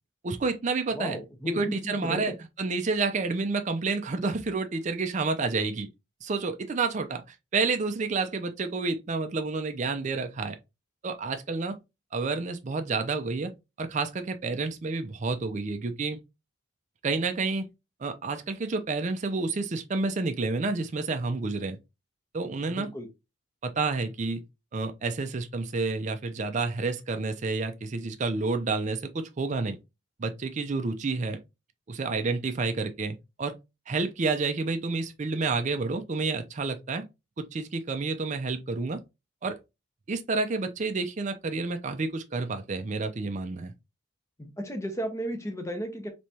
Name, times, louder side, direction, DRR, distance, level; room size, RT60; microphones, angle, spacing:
voice 1, 0.2-1.2 1.5-5.9 6.2-7.2 7.5-10.6 11.0-11.8 12.1-13.5 13.8-16.2 17.0-17.7 18.0-21.8 22.3-22.9 23.6-24.4 24.7-29.8 30.2-31.4 31.9-33.5 33.9-37.0 37.4-39.0 39.4-39.6 40.1-43.7, right 3 dB, 35° right, 0.4 m, -29 dB
voice 2, 0.9-2.2 22.7-23.1 44.4-46.1, equal, 15° left, 0.7 m, -34 dB
3.4 x 3.1 x 2.7 m
head